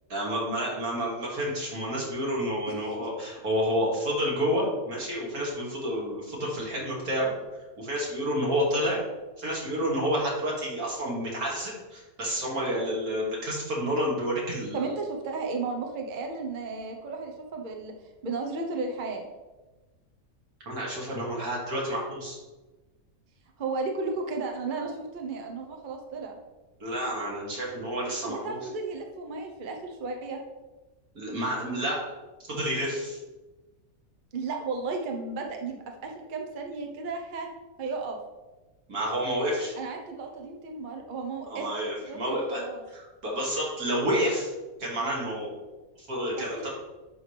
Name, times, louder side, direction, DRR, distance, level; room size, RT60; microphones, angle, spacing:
voice 1, 0.1-7.3 7.8-9.0 9.4-14.8 20.7-22.4 26.8-28.6 31.1-32.0 32.5-33.2 38.9-39.7 41.5-42.6 42.9-44.5 44.8-45.6 46.1-46.7, equal, 80° right, -4 dB, 2.6 m, -29 dB
voice 2, 2.7-3.1 14.7-17.9 18.2-19.2 23.6-26.4 28.2-30.4 34.3-37.5 37.8-38.2 39.8-41.7 42.1-42.8 46.4-46.7, right 4 dB, 40° right, 3 dB, 1.0 m, -34 dB
10.5 x 4.9 x 3.4 m, 1.1 s
omnidirectional pair, 1.5 m